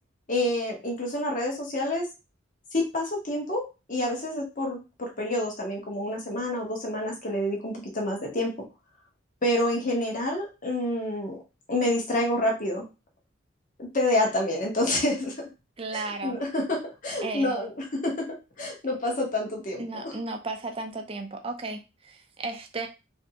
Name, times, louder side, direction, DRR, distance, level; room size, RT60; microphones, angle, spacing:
voice 1, 0.3-2.0 2.7-3.6 3.9-8.5 9.4-11.4 11.7-12.8 13.8-15.3 15.9-18.1 18.6-20.1, left 1 dB, 40° left, 0 dB, 0.9 m, -28 dB
voice 2, 15.8-16.4 17.2-17.6 19.8-22.9, right 3 dB, 30° right, 5 dB, 0.4 m, -34 dB
3.1 x 2.6 x 2.7 m, 0.28 s
head